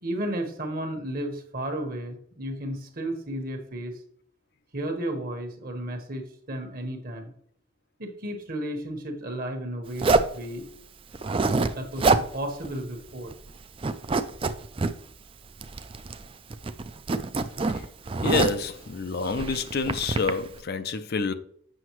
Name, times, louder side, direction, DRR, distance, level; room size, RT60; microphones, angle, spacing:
voice 1, 0.0-3.9 4.7-7.3 8.0-10.6 11.7-13.3, right 1 dB, 45° right, 1.3 m, -33 dB
Zipper (clothing), 10.0-10.4 11.1-11.7 12.0-12.3 12.6-12.7 13.1-13.5 13.8-14.9 15.6-16.3 16.5-18.7 19.3-20.3, right 3 dB, 25° right, 0.4 m, -25 dB
voice 2, 18.2-21.3, left 4 dB, 50° left, 0.5 m, -28 dB
7.8 x 6.3 x 3.1 m
head